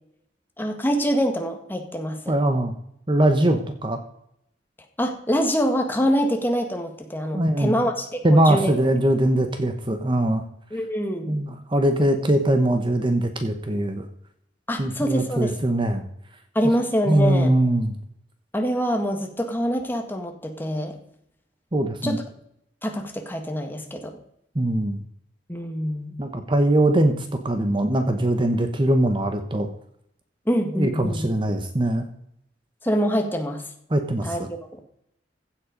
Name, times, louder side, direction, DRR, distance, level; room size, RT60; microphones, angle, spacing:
voice 1, 0.6-2.4 5.0-8.7 10.7-11.4 14.7-15.5 16.5-17.5 18.5-20.9 22.0-22.2 22.8-24.1 25.5-26.1 30.5-31.2 32.8-33.6 34.2-34.4, equal, 10° left, 4 dB, 1.6 m, -25 dB
voice 2, 2.3-2.7 3.1-4.0 7.3-7.7 8.2-10.4 11.3-14.0 14.8-16.0 17.1-17.9 21.7-22.2 24.5-25.0 26.2-29.7 30.7-32.1 33.9-34.5, right 1 dB, 30° right, 7 dB, 1.1 m, -21 dB
15.5 x 7.6 x 5.2 m, 0.74 s
head